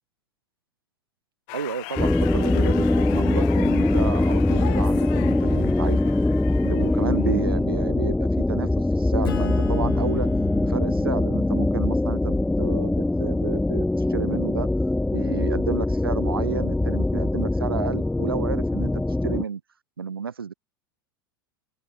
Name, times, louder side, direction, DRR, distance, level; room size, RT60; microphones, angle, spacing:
sound 1, 1.5-7.6, left 36 dB, 55° left, 5.2 m, -39 dB
voice 1, 1.5-6.1 6.6-8.7 9.0-10.3 10.6-12.9 13.2-14.7 15.1-19.6 20.0-20.5, right 6 dB, 85° right, 4.4 m, -32 dB
sound 2, 2.0-19.4, left 2 dB, 5° left, 1.2 m, -22 dB
Acoustic guitar / Strum, 9.2-14.2, left 10 dB, 75° left, 4.6 m, -39 dB
open air
hypercardioid pair, 90°, 12 cm